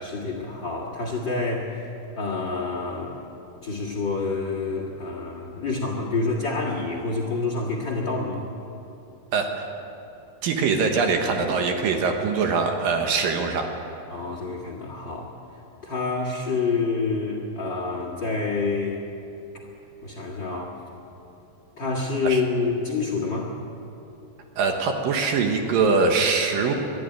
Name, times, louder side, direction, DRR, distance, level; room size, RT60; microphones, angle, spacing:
voice 1, 0.0-1.9 2.2-3.2 3.6-8.4 14.1-15.3 15.8-19.0 20.0-20.8 21.8-23.5, left 3 dB, 40° left, 0 dB, 1.8 m, -27 dB
voice 2, 9.3-9.7 10.4-13.7 22.2-22.4 24.6-26.7, right 4 dB, 65° right, 3 dB, 2.8 m, -23 dB
22.0 x 13.0 x 9.2 m, 2.8 s
omnidirectional pair, 4.6 m